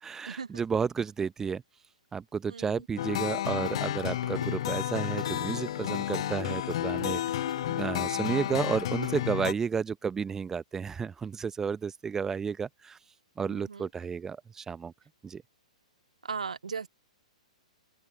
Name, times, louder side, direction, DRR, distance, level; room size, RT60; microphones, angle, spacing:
voice 1, 0.0-1.6 2.1-13.0 13.4-14.9 15.2-15.4, right 6 dB, 10° right, 0.9 m, -32 dB
voice 2, 2.5-2.9 13.5-13.9 16.2-16.9, right 5 dB, 70° right, 0.5 m, -37 dB
sound 1, 3.0-9.5, left 13 dB, 50° left, 0.7 m, -31 dB
sound 2, 3.4-9.2, left 3 dB, 80° left, 3.2 m, -43 dB
open air
figure-of-eight pair, 115°, 4 cm